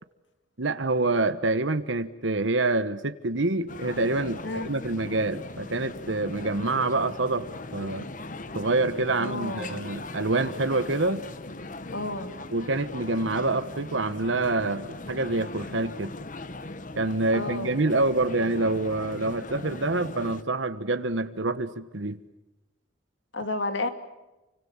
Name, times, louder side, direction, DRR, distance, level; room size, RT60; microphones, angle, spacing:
voice 1, 0.6-4.4 4.6-7.5 7.7-8.1 8.5-11.2 12.5-16.1 17.0-22.2, right 2 dB, 70° right, 11 dB, 1.3 m, -26 dB
sound 1, 3.7-20.4, left 2 dB, 40° left, 1.2 m, -39 dB
voice 2, 9.1-9.8 11.9-12.3 17.3-17.8 23.3-23.9, left 2 dB, 65° left, 8 dB, 2.6 m, -31 dB
29.5 x 25.5 x 7.3 m, 1.0 s
head